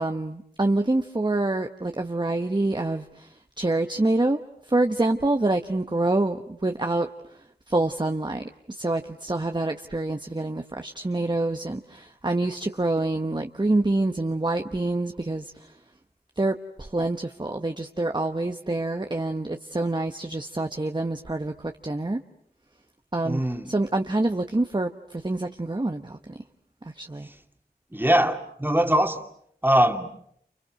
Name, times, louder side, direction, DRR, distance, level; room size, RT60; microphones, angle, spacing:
voice 1, 0.0-4.4 4.7-7.1 7.7-15.7 16.4-22.2 23.1-26.4 26.8-27.3, right 2 dB, 25° right, 1.1 m, -26 dB
voice 2, 23.2-23.7 27.2-27.4 27.9-29.2 29.6-30.1, right 1 dB, 10° right, 2.5 m, -22 dB
29.5 x 29.0 x 6.4 m
wide cardioid pair, 45°, 17 cm